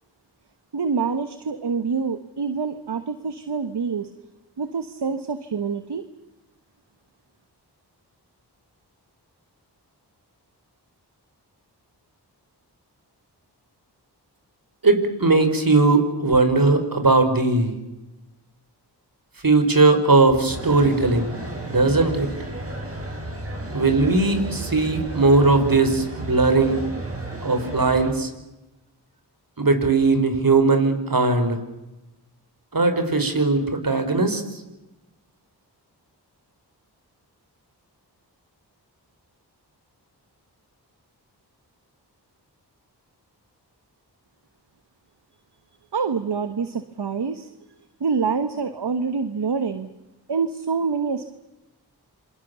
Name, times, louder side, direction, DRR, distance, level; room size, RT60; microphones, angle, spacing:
voice 1, 0.7-4.1 4.6-6.0 45.9-47.5 48.0-49.9 50.3-51.4, right 5 dB, 70° right, 10 dB, 1.5 m, -26 dB
voice 2, 14.8-17.7 19.4-21.3 21.7-22.3 23.7-26.8 27.4-28.3 29.6-31.6 32.7-34.4, right 3 dB, 55° right, 8 dB, 5.1 m, -19 dB
sound 1, 20.5-28.1, right 2 dB, 35° right, 7.3 m, -33 dB
27.5 x 25.5 x 7.1 m, 0.99 s
cardioid pair, 45°, 41 cm